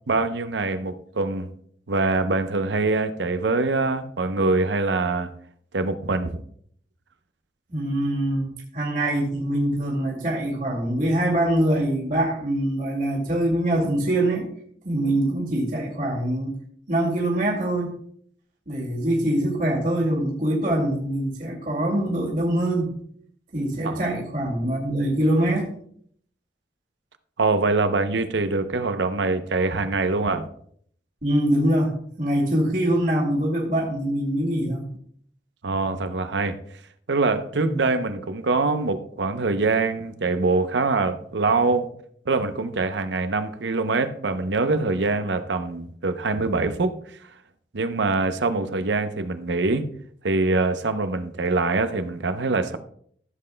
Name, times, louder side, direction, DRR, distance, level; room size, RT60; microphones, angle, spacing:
voice 1, 0.1-1.5 1.9-5.3 5.7-6.4 23.8-24.0 27.4-30.5 35.6-36.6 37.1-41.9 42.3-47.0 47.7-49.8 50.2-52.8, right 3 dB, 80° right, 10 dB, 0.7 m, -24 dB
voice 2, 7.7-14.5 14.8-16.5 16.9-17.9 18.7-22.9 23.5-25.7 31.2-34.9 37.6-37.8, right 1 dB, 45° right, -2 dB, 2.2 m, -24 dB
14.5 x 7.6 x 2.2 m, 0.62 s
head